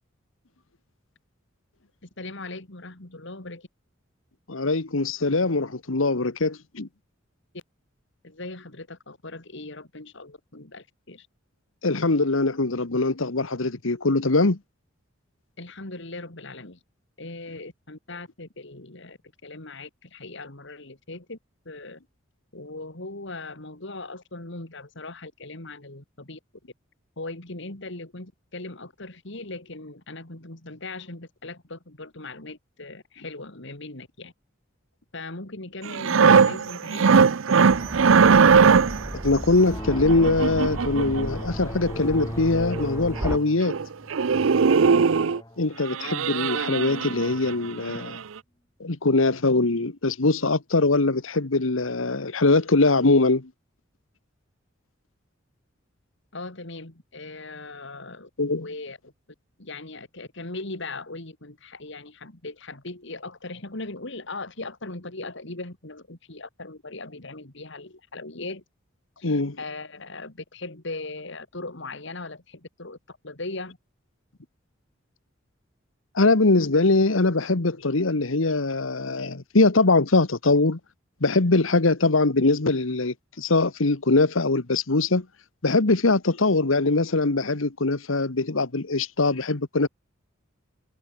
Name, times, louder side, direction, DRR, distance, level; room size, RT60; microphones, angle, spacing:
voice 1, 2.0-3.7 7.5-7.6 8.2-11.3 15.6-16.8 17.2-21.4 21.6-22.0 22.5-26.4 27.2-34.3 35.1-37.8 56.3-58.3 58.6-59.1 59.6-68.6 69.2-73.8, left 2 dB, 65° left, 3.1 m, -39 dB
voice 2, 4.5-6.9 11.8-14.6 39.2-43.8 45.6-48.2 48.8-53.5 58.4-58.7 69.2-69.6 76.1-80.8 81.2-85.2 85.6-89.9, left 3 dB, 85° left, 1.4 m, -22 dB
sound 1, 35.9-39.1 40.1-41.3 42.4-42.5 42.7-42.9 43.2-43.4 43.7-43.9 44.1-45.4 45.9-47.5 47.9-48.1, right 5 dB, 80° right, 0.6 m, -19 dB
sound 2, 37.7-43.4, equal, 15° right, 2.2 m, -35 dB
sound 3, 39.5-47.6, equal, 20° left, 6.9 m, -38 dB
head